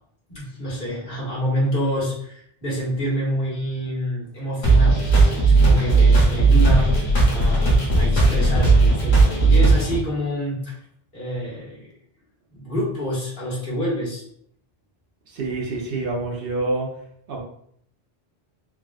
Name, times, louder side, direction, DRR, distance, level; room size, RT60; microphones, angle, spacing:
voice 1, 0.3-10.8 11.1-11.9 12.5-14.2, equal, 60° left, -8 dB, 1.5 m, -27 dB
sound 1, 4.6-10.0, right 3 dB, 85° left, 1.2 m, -16 dB
voice 2, 15.3-16.9 17.3-17.4, right 2 dB, 65° right, 0 dB, 0.8 m, -27 dB
3.5 x 2.3 x 2.3 m, 0.67 s
omnidirectional pair, 1.1 m